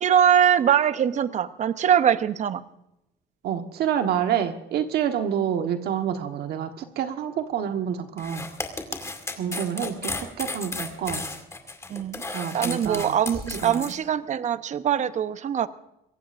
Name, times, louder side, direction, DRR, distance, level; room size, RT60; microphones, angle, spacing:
voice 1, 0.0-2.6 11.9-12.2 12.5-15.7, right 9 dB, 45° right, 12 dB, 0.9 m, -22 dB
voice 2, 3.4-8.4 9.3-11.2 12.3-13.1 13.4-13.8, right 9 dB, 70° right, 6 dB, 1.3 m, -28 dB
sound 1, 8.2-14.0, left 3 dB, 15° left, 2.3 m, -34 dB
24.0 x 17.0 x 2.6 m, 0.85 s
cardioid pair, 110°, 17 cm